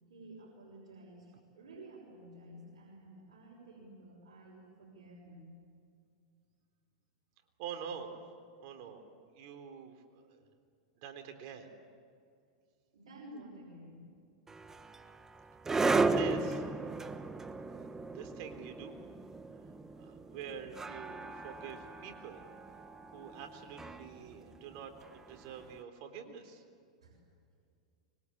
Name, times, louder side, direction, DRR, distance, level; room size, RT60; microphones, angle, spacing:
voice 1, 0.1-5.6 12.9-14.1 27.0-27.2, right 1 dB, 80° right, -4 dB, 6.1 m, -52 dB
voice 2, 7.6-8.1 8.6-9.0 9.3-10.4 11.0-11.7 16.0-16.6 17.7-19.1 19.6-19.7 20.0-22.4 23.1-26.6, right 7 dB, 55° right, 6 dB, 3.7 m, -46 dB
sound 1, 14.5-25.6, right 3 dB, 15° right, 1.1 m, -36 dB
25.0 x 22.5 x 8.7 m, 2.3 s
hypercardioid pair, 115°, 3 cm